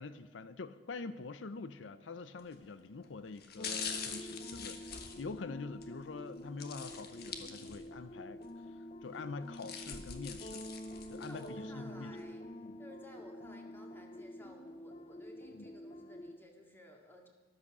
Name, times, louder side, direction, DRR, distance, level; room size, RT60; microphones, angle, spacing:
voice 1, 0.0-8.4 8.7-10.6 11.1-12.2 12.6-12.7 15.6-15.7, left 4 dB, 80° left, 13 dB, 0.6 m, -45 dB
sound 1, 2.4-2.7 3.3-5.9 6.6-8.0 8.4-8.5 9.3-11.5 12.0-12.1, left 6 dB, 60° left, 1.4 m, -44 dB
sound 2, 3.6-16.4, equal, 35° left, 0.7 m, -48 dB
voice 2, 11.2-12.5 12.8-17.3, left 1 dB, 10° left, 2 dB, 2.2 m, -56 dB
14.0 x 12.5 x 6.1 m, 1.4 s
head